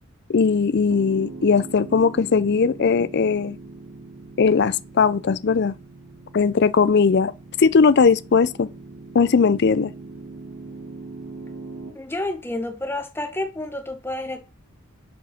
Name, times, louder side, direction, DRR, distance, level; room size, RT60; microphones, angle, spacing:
voice 1, 0.3-3.6 4.4-5.7 6.3-7.3 7.6-8.7 9.1-9.9, left 5 dB, 50° left, 0.4 m, -19 dB
Piano, 0.9-11.9, right 3 dB, 60° right, 2.3 m, -41 dB
voice 2, 11.9-14.4, left 1 dB, 10° left, 1.0 m, -29 dB
8.3 x 4.5 x 5.8 m
head